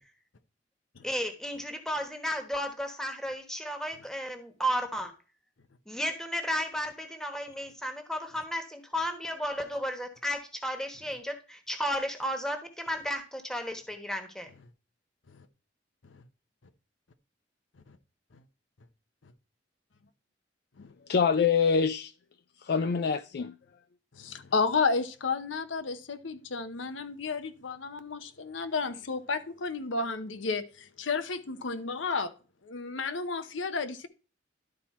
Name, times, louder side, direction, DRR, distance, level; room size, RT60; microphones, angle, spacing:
voice 1, 1.0-5.1 5.9-14.5, equal, 5° left, 1.2 m, -33 dB
voice 2, 21.0-22.1 22.6-23.6, left 6 dB, 60° left, 0.4 m, -25 dB
voice 3, 24.1-32.3 32.6-34.1, left 4 dB, 85° left, 0.8 m, -32 dB
12.0 x 4.3 x 4.2 m
head